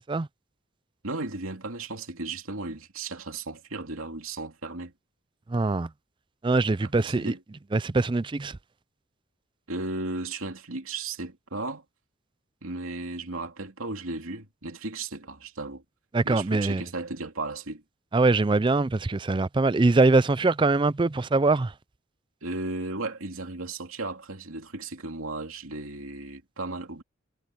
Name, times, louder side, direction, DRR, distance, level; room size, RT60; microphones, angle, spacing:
voice 1, 1.0-4.9 6.8-7.4 9.7-11.8 12.6-15.8 16.2-17.8 22.4-27.0, right 2 dB, 90° right, 2.7 m, -35 dB
voice 2, 5.5-5.9 6.4-7.3 7.7-8.6 16.1-16.8 18.1-21.7, right 3 dB, 25° right, 0.4 m, -23 dB
head